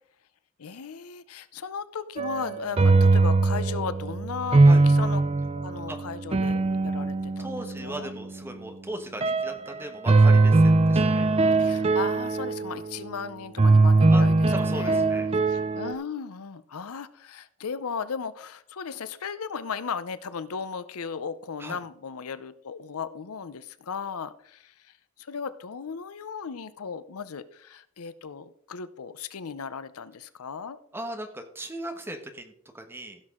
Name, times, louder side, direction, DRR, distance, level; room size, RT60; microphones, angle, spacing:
voice 1, 0.6-5.2 5.6-7.5 7.8-8.1 11.6-15.1 15.5-24.7 25.2-30.8, left 6 dB, 80° left, 14 dB, 0.6 m, -36 dB
sound 1, 2.2-8.1 9.2-9.5 10.1-13.0 13.6-15.9, right 3 dB, 25° right, 0.4 m, -21 dB
voice 2, 7.4-11.3 14.1-14.2 14.5-15.3 21.6-21.8 30.9-33.2, right 1 dB, 10° right, 5 dB, 1.1 m, -38 dB
15.5 x 6.3 x 3.7 m, 0.67 s
head